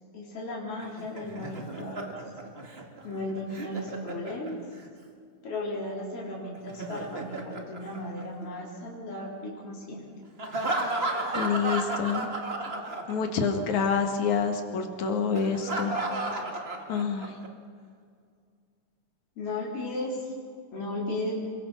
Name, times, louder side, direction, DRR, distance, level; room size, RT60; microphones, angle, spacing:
voice 1, 0.1-2.1 3.0-4.6 5.4-10.1 19.4-20.3 20.7-21.3, left 1 dB, 45° left, -4 dB, 5.0 m, -35 dB
Laughter, 0.8-4.9 6.5-8.7 10.4-13.5 13.7-13.9 15.4-17.5, right 2 dB, 25° right, 1.5 m, -34 dB
voice 2, 11.3-12.3 13.1-15.9 16.9-17.4, left 6 dB, 70° left, 5 dB, 3.2 m, -27 dB
28.0 x 22.5 x 5.9 m, 2.2 s
omnidirectional pair, 3.6 m